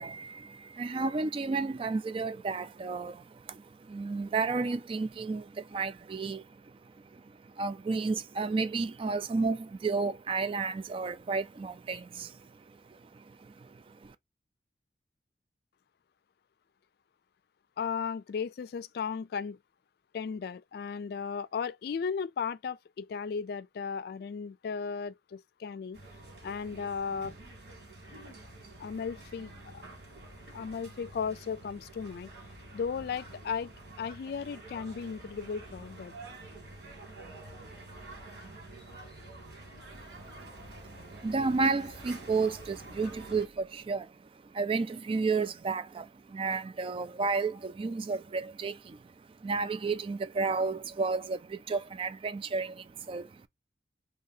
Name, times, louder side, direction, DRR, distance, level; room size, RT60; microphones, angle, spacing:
voice 1, 0.0-14.1 39.9-44.2 44.4-49.1 49.4-53.5, right 4 dB, 30° right, 0.3 m, -32 dB
voice 2, 17.8-19.6 20.1-26.0 26.4-27.3 28.8-29.8 30.5-32.3 32.7-33.7 34.0-36.2, left 6 dB, 60° left, 0.3 m, -35 dB
sound 1, 25.9-43.5, right 2 dB, 65° right, 1.9 m, -48 dB
2.8 x 2.7 x 3.9 m
head